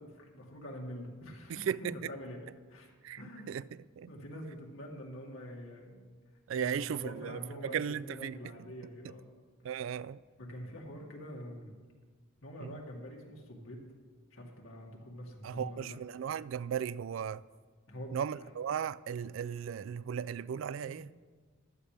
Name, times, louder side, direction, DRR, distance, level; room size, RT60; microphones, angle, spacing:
voice 1, 0.0-3.5 4.1-6.1 6.5-9.3 10.4-11.8 12.4-13.8 14.3-16.0 17.9-18.5 20.8-21.1, equal, 80° left, 2.2 m, -45 dB
voice 2, 1.5-2.1 3.0-3.2 3.5-3.6 4.0-4.1 6.5-8.4 9.6-10.2 12.6-12.8 15.4-17.4 18.1-21.1, right 8 dB, 65° right, 0.3 m, -36 dB
14.5 x 11.5 x 3.4 m
head